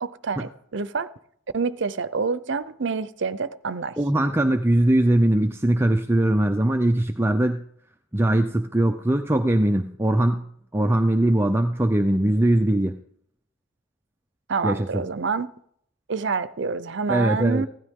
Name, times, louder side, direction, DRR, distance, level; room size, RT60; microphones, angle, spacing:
voice 1, 0.0-1.1 1.5-4.0 14.5-15.5 16.1-17.7, right 4 dB, 60° right, 0.6 m, -27 dB
voice 2, 4.0-7.6 8.1-10.4 10.7-13.0 14.6-15.0 17.1-17.7, right 1 dB, 10° right, 0.5 m, -21 dB
16.0 x 13.0 x 3.7 m
head